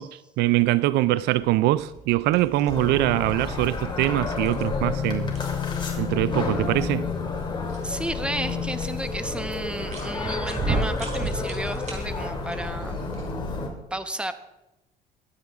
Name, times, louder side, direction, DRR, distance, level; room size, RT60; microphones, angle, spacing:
voice 1, 0.0-5.3 6.0-7.1, right 16 dB, 85° right, 0.4 m, -23 dB
sound 1, 1.2-13.5, right 2 dB, 45° right, 3.6 m, -37 dB
sound 2, 2.7-13.7, left 4 dB, 25° left, 2.8 m, -30 dB
voice 2, 7.8-13.0 13.9-14.3, right 1 dB, 5° right, 0.9 m, -32 dB
22.5 x 8.3 x 3.6 m
cardioid pair, 110°, 17 cm